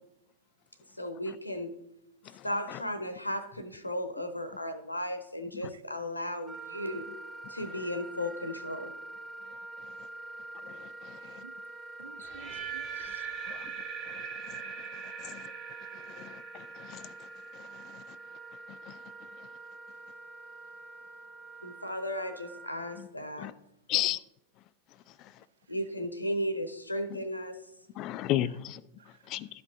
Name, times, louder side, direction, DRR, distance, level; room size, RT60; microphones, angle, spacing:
voice 1, 1.0-1.7 2.4-7.1 7.5-8.9 21.6-23.5 25.7-27.6, left 1 dB, 85° left, 0.9 m, -35 dB
Wind instrument woodwind instrument, 6.5-23.0, right 2 dB, 15° right, 0.9 m, -46 dB
voice 2, 11.2-11.5 12.0-13.3 29.0-29.3, right 7 dB, 65° right, 0.4 m, -52 dB
sound 1, 12.2-18.2, right 8 dB, 40° right, 1.7 m, -42 dB
voice 3, 16.2-17.0 23.0-23.1 23.4-23.5 23.9-24.2 28.0-28.8 29.3-29.5, left 14 dB, 40° left, 0.4 m, -32 dB
12.0 x 5.4 x 3.7 m
figure-of-eight pair, 90°, 0 cm